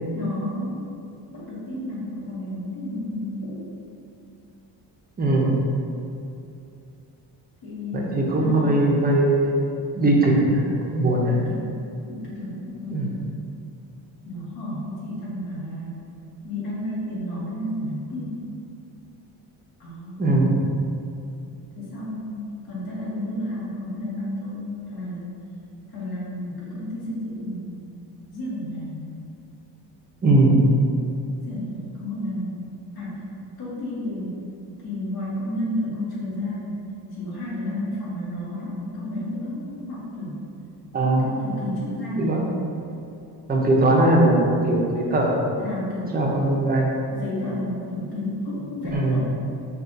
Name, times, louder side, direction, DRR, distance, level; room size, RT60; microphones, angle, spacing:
voice 1, 0.1-0.8 1.3-3.6 7.6-8.9 11.3-11.6 12.1-13.0 14.2-16.0 16.4-18.4 19.8-20.3 21.7-25.4 25.9-27.8 28.3-29.0 31.4-32.7 32.9-33.2 33.6-34.3 34.8-36.8 37.1-40.4 41.0-42.4 45.6-46.1 47.1-49.2, left 1 dB, 60° left, -7 dB, 1.3 m, -31 dB
voice 2, 5.2-5.6 7.9-9.7 9.9-11.4 12.9-13.1 20.2-20.6 30.2-30.6 40.9-41.3 42.2-42.5 43.5-45.4 46.1-46.9 48.9-49.2, right 2 dB, 20° right, -2 dB, 0.5 m, -20 dB
5.6 x 2.3 x 2.6 m, 2.6 s
cardioid pair, 125°, 43 cm